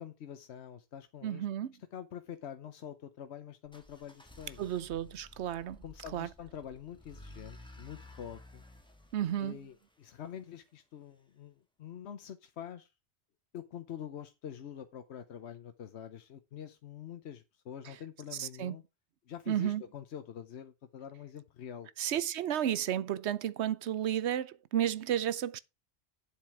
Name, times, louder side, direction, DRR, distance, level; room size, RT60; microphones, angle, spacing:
voice 1, 0.0-1.5 1.9-4.7 5.8-8.6 9.4-12.9 13.5-18.8 19.3-21.9, left 9 dB, 80° left, 1.1 m, -46 dB
voice 2, 1.2-1.7 4.6-5.8 6.1-6.3 9.1-9.6 18.4-18.7 19.5-19.8 22.0-25.6, right 10 dB, 85° right, 1.0 m, -32 dB
sound 1, 3.6-10.5, left 2 dB, 5° left, 1.5 m, -54 dB
8.7 x 7.5 x 4.7 m
omnidirectional pair, 1.1 m